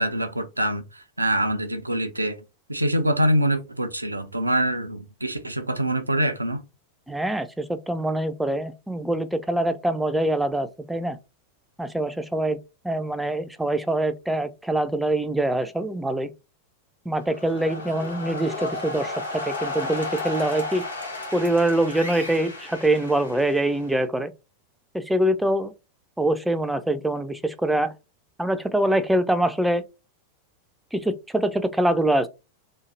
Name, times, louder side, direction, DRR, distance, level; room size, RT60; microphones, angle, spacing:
voice 1, 0.0-2.4 2.7-6.6, right 1 dB, 85° right, 0.3 m, -25 dB
voice 2, 7.1-11.2 11.8-12.6 12.8-16.3 17.1-20.8 21.3-24.3 24.9-25.7 26.2-27.9 28.4-29.8 30.9-32.3, right 1 dB, 5° right, 0.3 m, -24 dB
sound 1, 17.1-24.0, left 2 dB, 80° left, 1.1 m, -33 dB
2.8 x 2.4 x 2.5 m
figure-of-eight pair, 90°, 0 cm